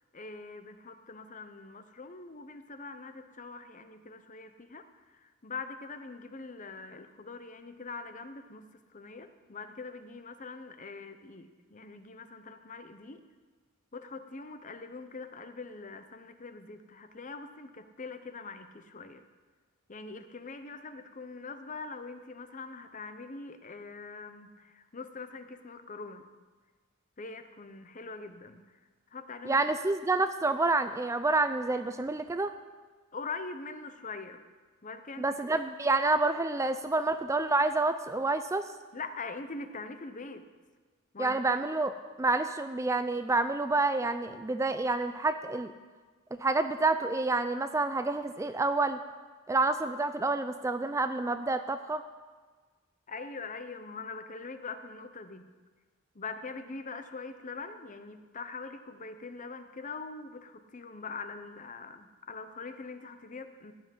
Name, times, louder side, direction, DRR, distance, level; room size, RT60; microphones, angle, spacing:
voice 1, 0.1-4.8 5.2-8.7 8.9-13.2 13.9-19.2 19.9-26.3 27.2-28.6 29.1-29.6 33.1-34.4 34.8-35.3 38.9-40.4 41.1-41.3 53.1-55.5 56.1-63.7, left 4 dB, 35° left, 9 dB, 0.8 m, -43 dB
voice 2, 29.4-32.5 35.2-38.7 41.2-45.7 46.4-49.0 49.5-52.0, right 3 dB, 15° right, 10 dB, 0.4 m, -28 dB
15.0 x 5.9 x 9.4 m, 1.4 s
head